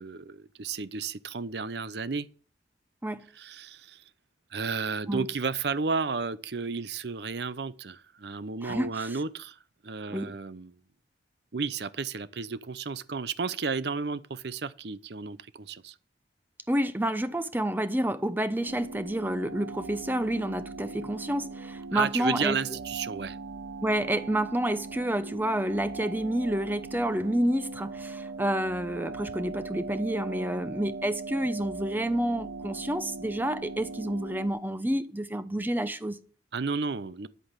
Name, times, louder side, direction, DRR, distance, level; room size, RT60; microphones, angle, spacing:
voice 1, 0.0-2.3 3.3-4.0 4.5-10.7 11.5-15.9 21.9-23.4 36.5-37.3, right 5 dB, 65° right, 0.7 m, -32 dB
voice 2, 8.6-9.2 10.1-10.4 16.7-22.6 23.8-36.2, right 1 dB, 10° right, 0.7 m, -29 dB
sound 1, 18.7-34.5, right 3 dB, 85° right, 1.0 m, -40 dB
10.5 x 8.3 x 7.4 m
head